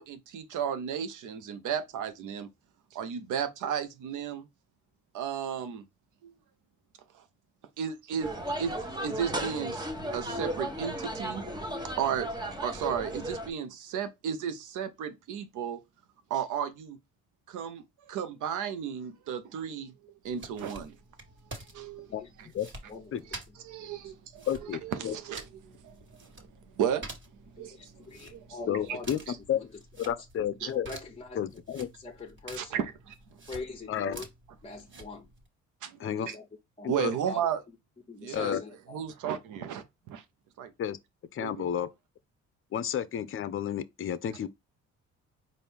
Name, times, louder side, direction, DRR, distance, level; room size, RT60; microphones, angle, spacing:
voice 1, 0.0-2.5 2.9-4.5 5.1-5.8 6.2-6.3 7.1-7.2 7.8-9.9 10.1-11.4 12.0-12.3 12.6-15.8 16.3-17.0 17.5-21.0 21.6-22.1 23.6-24.5 24.8-26.3 26.8-27.0 27.5-28.5 30.6-30.7 32.6-33.1 35.8-36.0 36.3-36.4 36.9-37.6 38.2-38.6 38.9-40.2 40.6-40.7 41.4-41.5, right 8 dB, 85° right, 0.9 m, -34 dB
sound 1, 8.2-13.5, right 1 dB, 15° right, 1.0 m, -35 dB
sound 2, 20.2-35.5, right 2 dB, 40° right, 1.7 m, -49 dB
voice 2, 22.9-23.6 23.8-24.1 27.6-29.3 29.5-29.8 30.6-31.6 31.9-32.8 33.5-34.3 34.6-35.3 36.2-36.5 36.8-36.9 37.2-37.5 38.1-39.0, left 3 dB, 20° left, 0.9 m, -43 dB
voice 3, 24.5-25.2 28.7-29.2 29.5-29.6 30.0-30.9 31.4-31.9 33.9-34.2 36.0-36.3 36.8-37.1 38.3-38.6 40.8-41.0 41.3-41.9 42.7-44.5, left 9 dB, 45° left, 0.6 m, -31 dB
4.5 x 2.6 x 3.4 m
cardioid pair, 90°, 30 cm